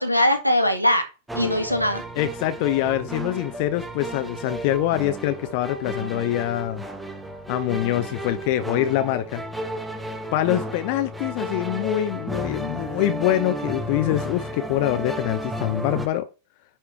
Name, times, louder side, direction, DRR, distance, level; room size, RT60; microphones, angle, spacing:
voice 1, 0.0-2.0, left 1 dB, 90° left, 1.9 m, -21 dB
sound 1, 1.3-16.1, right 1 dB, 5° right, 1.5 m, -33 dB
voice 2, 2.2-6.8 7.5-9.4 10.3-16.3, left 13 dB, 45° left, 0.9 m, -24 dB
10.5 x 4.9 x 4.5 m
figure-of-eight pair, 90°, 0 cm